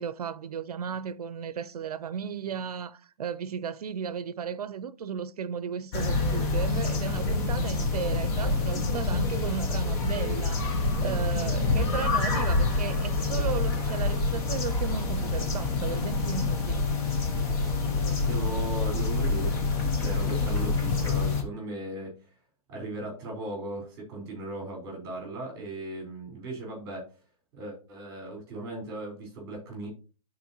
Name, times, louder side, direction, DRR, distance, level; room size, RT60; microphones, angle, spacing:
voice 1, 0.0-16.8, right 7 dB, 85° right, 0.6 m, -35 dB
sound 1, 5.9-21.4, left 3 dB, 15° left, 0.7 m, -27 dB
voice 2, 18.2-22.3 22.7-27.0 27.5-29.9, right 2 dB, 15° right, 4.1 m, -37 dB
12.0 x 4.3 x 3.0 m
hypercardioid pair, 165°, 19 cm